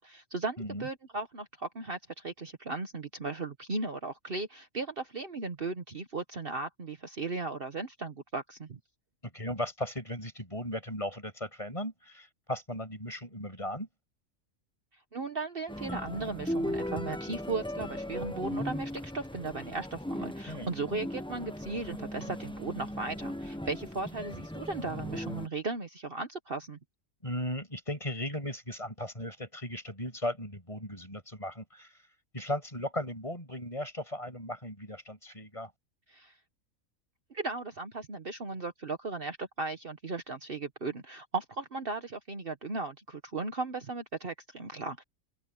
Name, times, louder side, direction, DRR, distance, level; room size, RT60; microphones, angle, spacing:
voice 1, 0.0-8.8 15.1-26.8 36.1-36.3 37.3-45.0, right 3 dB, 45° right, 1.5 m, -36 dB
voice 2, 0.6-0.9 9.3-13.9 20.5-20.7 27.2-31.9 32.3-35.7, left 1 dB, 25° left, 7.6 m, -37 dB
sound 1, 15.7-25.5, equal, 5° left, 1.0 m, -37 dB
open air
omnidirectional pair, 1.4 m